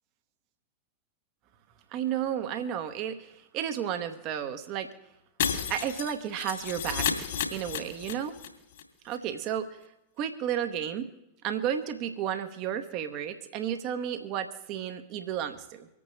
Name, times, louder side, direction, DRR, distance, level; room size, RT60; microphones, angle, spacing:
voice 1, 1.9-4.9 5.7-8.3 9.0-9.8 10.2-11.1 11.4-15.9, right 9 dB, 40° right, 8 dB, 0.9 m, -32 dB
Shatter, 5.4-8.5 8.7-8.8 9.1-9.2, left 8 dB, 60° left, 2.5 m, -32 dB
25.5 x 8.7 x 3.3 m, 0.91 s
figure-of-eight pair, 90°, 0 cm